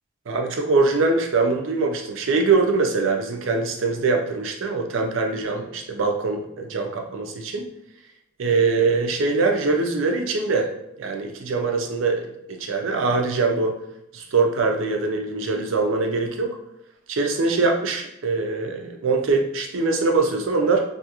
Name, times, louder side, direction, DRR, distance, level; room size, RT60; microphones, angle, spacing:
voice 1, 0.3-7.7 8.4-10.7 11.0-12.2 12.5-13.8 14.1-16.6 17.1-20.8, right 3 dB, 80° right, 3 dB, 0.5 m, -23 dB
2.7 x 2.4 x 2.8 m, 0.81 s
head